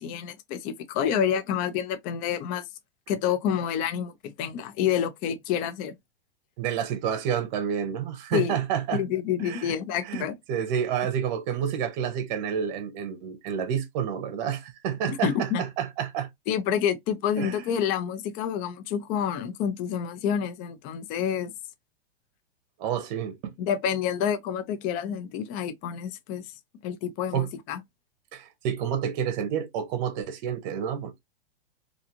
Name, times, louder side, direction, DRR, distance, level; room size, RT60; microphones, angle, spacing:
voice 1, 0.0-2.7 3.1-5.9 8.3-8.5 8.9-10.4 15.1-15.6 16.5-21.5 23.6-26.4 26.8-27.8, left 8 dB, 25° left, 0.4 m, -28 dB
voice 2, 6.6-9.0 9.4-9.7 10.0-16.3 17.4-17.6 22.8-23.4 27.3-27.5 28.3-31.2, right 8 dB, 45° right, 0.7 m, -29 dB
2.5 x 2.4 x 2.8 m
hypercardioid pair, 125°, 32 cm